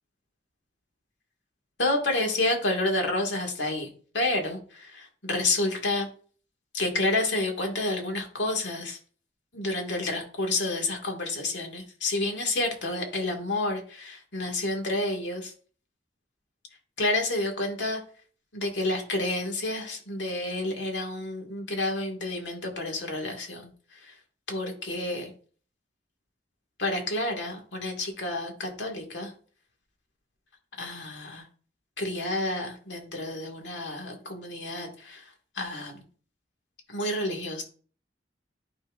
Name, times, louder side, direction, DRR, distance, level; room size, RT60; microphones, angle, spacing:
voice 1, 1.8-3.9 4.1-6.1 6.7-9.0 9.5-15.5 17.0-18.0 18.5-23.7 24.0-24.1 24.5-25.3 26.8-29.3 30.8-31.4 32.0-35.3 35.6-36.0 36.9-37.6, left 2 dB, 85° left, 2 dB, 1.8 m, -29 dB
11.5 x 4.4 x 2.4 m, 0.43 s
head